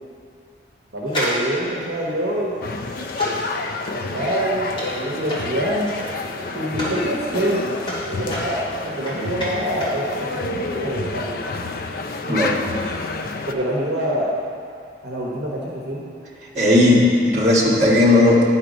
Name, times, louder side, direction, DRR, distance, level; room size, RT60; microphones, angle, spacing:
voice 1, 0.9-2.5 3.9-5.9 6.5-7.6 8.1-11.4 13.5-14.3 15.0-16.0, equal, 70° right, -4 dB, 1.1 m, -25 dB
sound 1, 1.1-7.0 7.4-10.0 10.3-10.4, equal, 25° left, 2.2 m, -31 dB
sound 2, 2.6-13.5, left 3 dB, 50° left, 0.4 m, -29 dB
voice 2, 16.5-18.4, left 2 dB, 40° right, -5 dB, 1.4 m, -15 dB
10.0 x 4.5 x 5.1 m, 2.4 s
head